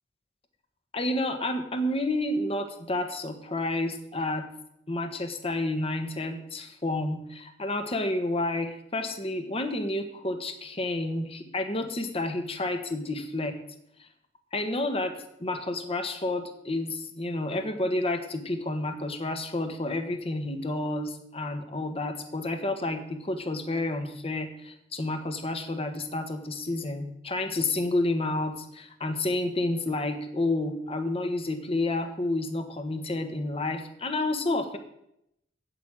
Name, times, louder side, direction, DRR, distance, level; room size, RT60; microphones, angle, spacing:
voice 1, 0.9-4.5 4.9-13.6 14.0-14.1 14.5-34.8, left 2 dB, 30° left, 7 dB, 1.4 m, -30 dB
8.2 x 8.2 x 8.9 m, 0.78 s
head